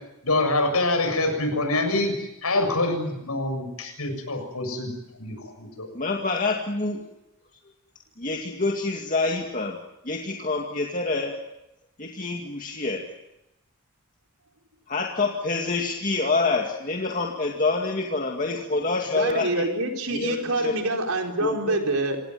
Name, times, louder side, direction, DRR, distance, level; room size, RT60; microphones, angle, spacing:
voice 1, 0.2-4.9 5.2-5.9, left 2 dB, 85° left, 6 dB, 7.0 m, -25 dB
voice 2, 5.9-7.0 8.2-9.8 10.0-11.3 12.0-13.0 14.9-19.7 20.1-20.8 21.4-21.8, left 3 dB, 35° left, 1 dB, 2.1 m, -27 dB
voice 3, 19.1-22.2, right 2 dB, 80° right, 3 dB, 4.3 m, -26 dB
27.5 x 17.5 x 9.2 m, 0.93 s
head